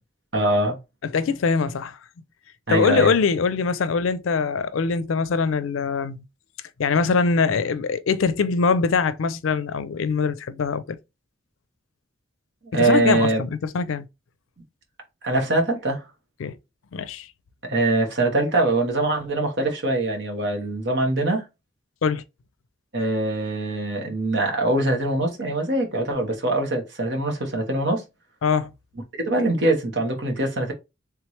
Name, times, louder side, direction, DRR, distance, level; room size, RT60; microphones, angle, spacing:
voice 1, 0.3-0.8 2.7-3.1 12.7-13.4 15.2-16.0 17.6-21.4 22.9-28.0 29.2-30.7, right 2 dB, 60° right, 1.3 m, -23 dB
voice 2, 1.0-2.0 2.7-6.2 6.8-11.0 12.7-14.1 16.4-16.6 16.9-17.3 22.0-22.2 28.4-28.7, left 5 dB, 90° left, 0.4 m, -23 dB
3.5 x 3.1 x 3.1 m
head